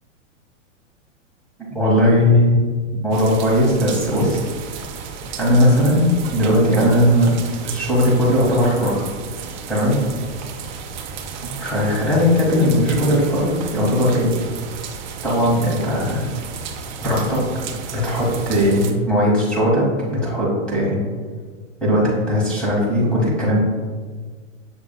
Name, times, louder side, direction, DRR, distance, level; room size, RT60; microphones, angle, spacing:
voice 1, 1.7-2.6 2.9-4.4 5.4-7.3 7.6-9.0 9.7-10.0 11.6-14.3 15.2-16.3 17.0-17.4 17.9-21.0 21.8-23.6, equal, 5° left, -7 dB, 1.1 m, -18 dB
sound 1, 3.1-18.9, right 6 dB, 40° right, 0.4 m, -33 dB
6.5 x 3.3 x 2.3 m, 1.5 s
hypercardioid pair, 150°, 38 cm